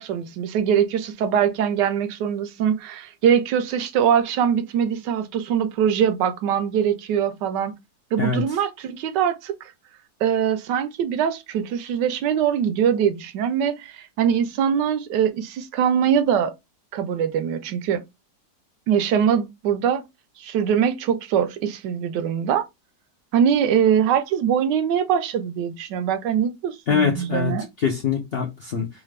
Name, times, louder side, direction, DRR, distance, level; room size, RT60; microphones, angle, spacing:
voice 1, 0.0-7.7 8.1-9.6 10.2-16.5 16.9-18.0 18.9-20.0 20.4-22.6 23.3-27.7, right 8 dB, 75° right, 1.2 m, -22 dB
voice 2, 26.9-28.9, left 6 dB, 70° left, 0.5 m, -24 dB
4.0 x 2.5 x 3.2 m
omnidirectional pair, 2.0 m